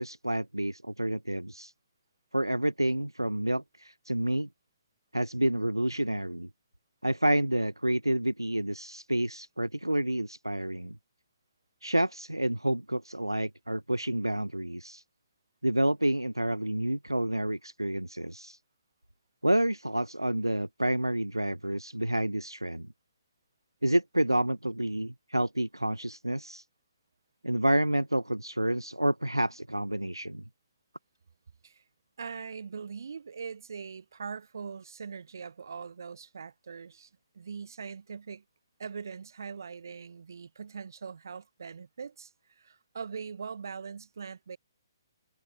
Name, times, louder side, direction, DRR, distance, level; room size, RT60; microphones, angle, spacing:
voice 1, 0.0-1.7 2.3-4.5 5.1-6.5 7.0-11.0 11.8-15.0 15.6-18.6 19.4-22.9 23.8-26.6 27.4-30.4, right 1 dB, 85° right, 0.7 m, -29 dB
voice 2, 32.2-37.1 37.3-38.4 38.8-42.3 42.6-44.6, right 6 dB, 55° right, 3.3 m, -41 dB
figure-of-eight pair, 135°, 2 cm